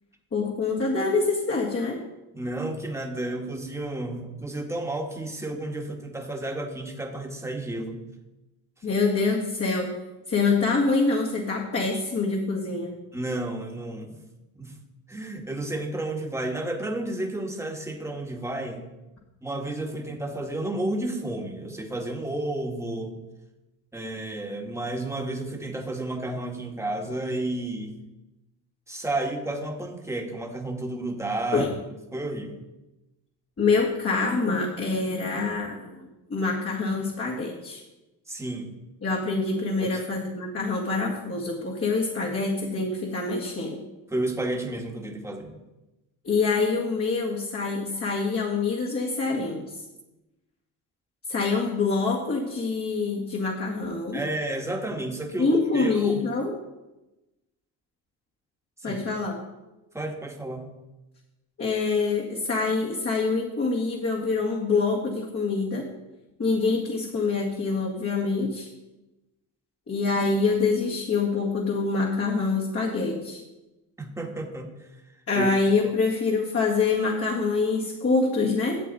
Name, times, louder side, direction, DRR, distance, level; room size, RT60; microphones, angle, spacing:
voice 1, 0.3-2.0 8.8-9.9 10.3-12.9 31.5-31.7 33.6-37.8 39.0-43.8 46.2-49.7 51.3-54.2 55.4-56.5 58.8-59.4 61.6-65.9 66.4-68.7 69.9-73.4 75.3-78.8, left 4 dB, 35° left, -3 dB, 2.0 m, -25 dB
voice 2, 2.3-8.0 13.1-14.2 14.6-14.8 15.1-18.9 19.4-23.2 23.9-28.0 28.9-31.7 32.1-32.6 38.3-38.7 39.8-40.0 44.1-45.6 54.1-56.2 58.8-59.0 59.9-60.7 74.0-74.9 75.3-75.5, right 1 dB, 5° right, 1 dB, 1.8 m, -31 dB
12.0 x 7.6 x 4.2 m, 1.0 s
cardioid pair, 85°, 40 cm